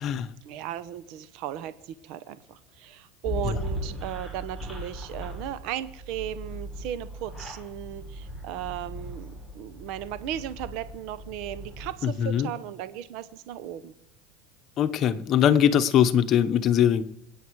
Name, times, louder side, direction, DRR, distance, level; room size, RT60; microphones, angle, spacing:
voice 1, 0.4-13.9, right 11 dB, 60° right, 14 dB, 0.9 m, -36 dB
sound 1, 3.2-11.9, equal, 10° right, 6.9 m, -38 dB
voice 2, 12.0-12.5 14.8-17.0, left 9 dB, 40° left, 10 dB, 1.0 m, -21 dB
26.5 x 9.1 x 4.8 m, 0.82 s
supercardioid pair, 130°, 0 cm